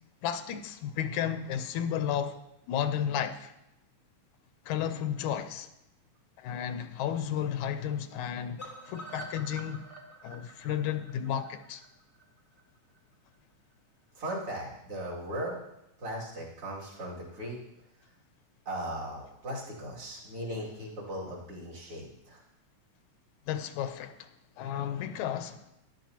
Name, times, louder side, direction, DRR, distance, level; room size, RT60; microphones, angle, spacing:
voice 1, 0.2-2.4 2.7-3.5 4.7-5.7 6.4-9.9 10.2-11.8 23.5-24.3 24.6-25.6, left 9 dB, 85° left, 2.1 m, -33 dB
sound 1, 8.6-12.6 12.9-13.0 13.3-13.4 13.7-13.8, right 1 dB, 55° left, 0.3 m, -46 dB
voice 2, 14.1-15.6 16.0-17.6 18.6-22.4, right 1 dB, 50° right, 3.2 m, -38 dB
13.5 x 11.0 x 2.8 m
omnidirectional pair, 3.3 m